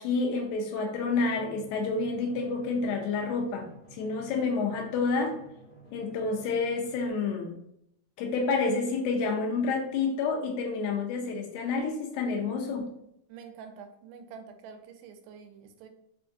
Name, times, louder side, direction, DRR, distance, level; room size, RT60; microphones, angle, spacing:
voice 1, 0.0-3.7 3.9-5.4 5.9-7.6 8.2-12.9, left 4 dB, 80° left, 1 dB, 1.9 m, -29 dB
Drum, 1.0-7.1, right 2 dB, 50° left, 0.9 m, -51 dB
voice 2, 13.3-15.9, right 6 dB, 85° right, 6 dB, 2.1 m, -47 dB
5.1 x 2.3 x 2.6 m, 0.77 s
omnidirectional pair, 3.8 m